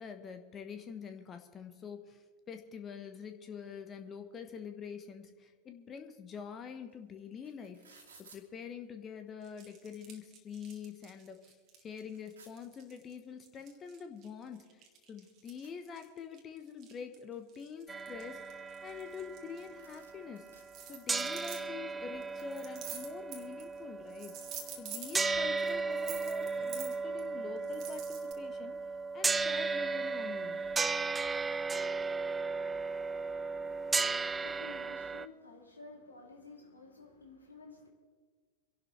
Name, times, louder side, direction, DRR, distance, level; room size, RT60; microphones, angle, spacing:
voice 1, 0.0-7.8 8.3-20.5 20.9-28.8 29.1-30.6, left 6 dB, 25° left, 7 dB, 1.2 m, -46 dB
sound 1, 6.9-7.0 7.2-8.4 9.3-9.4 9.7-10.5 11.0-11.1 11.4-12.5 13.7-13.8 14.2-14.3 14.5-16.4 16.8-17.5 18.0-19.2 19.5-19.6 19.8-20.6, right 4 dB, 65° right, 2.6 m, -61 dB
sound 2, 9.4-13.1 13.4-17.2 17.5-20.0 20.5-21.6 22.2-23.8 24.1-25.2 25.6-27.2 27.6-28.3, right 8 dB, 35° right, 2.0 m, -48 dB
sound 3, 17.9-20.8 21.1-35.3, right 4 dB, 15° right, 0.4 m, -35 dB
voice 2, 33.3-37.9, left 3 dB, 75° left, 0 dB, 2.9 m, -53 dB
26.0 x 11.5 x 3.3 m, 1.5 s
figure-of-eight pair, 90°, 0 cm